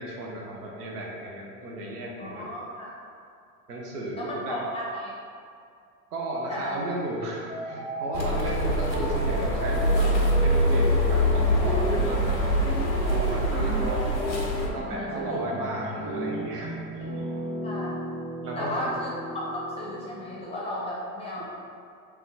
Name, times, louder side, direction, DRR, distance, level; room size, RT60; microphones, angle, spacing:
voice 1, 0.0-2.5 3.7-4.6 6.1-12.5 13.0-14.1 14.7-16.8 17.1-17.2 18.4-19.0, right 1 dB, 70° right, -2 dB, 0.9 m, -34 dB
voice 2, 2.2-2.9 4.2-5.1 6.5-6.8 13.4-13.9 14.9-15.4 17.6-18.2 18.6-21.4, left 1 dB, 10° left, -6 dB, 0.7 m, -34 dB
sound 1, 7.5-20.5, equal, 15° right, 1.0 m, -35 dB
sound 2, 8.1-14.7, equal, 90° left, 0.6 m, -24 dB
3.4 x 3.0 x 3.4 m, 2.4 s
figure-of-eight pair, 75°, 49 cm